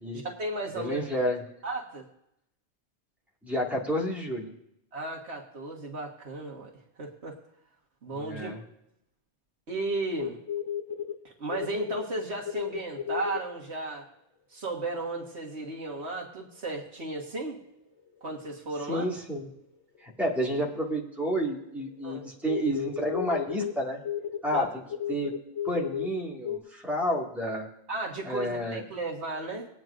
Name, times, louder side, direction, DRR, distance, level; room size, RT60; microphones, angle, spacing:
voice 1, 0.1-1.0 1.6-2.1 4.9-6.7 7.0-7.4 8.0-8.5 9.7-10.4 11.2-14.1 14.5-17.6 18.2-19.1 22.0-22.2 24.5-24.7 27.9-29.7, right 2 dB, 65° right, 0 dB, 1.7 m, -34 dB
voice 2, 0.8-1.4 3.4-4.5 8.1-8.6 18.9-19.5 20.0-24.0 24.4-24.8 25.1-25.3 25.6-27.7 28.3-28.8, equal, ahead, -3 dB, 1.9 m, -30 dB
sound 1, 10.2-11.1 11.5-12.0 12.5-13.4 15.2-15.3 17.5-17.6 20.5-20.6 20.9-21.5 21.8-22.0 22.5-23.7 24.0-26.1 26.5-26.6, left 9 dB, 65° left, 1.1 m, -33 dB
21.0 x 9.1 x 2.5 m, 0.79 s
omnidirectional pair, 1.2 m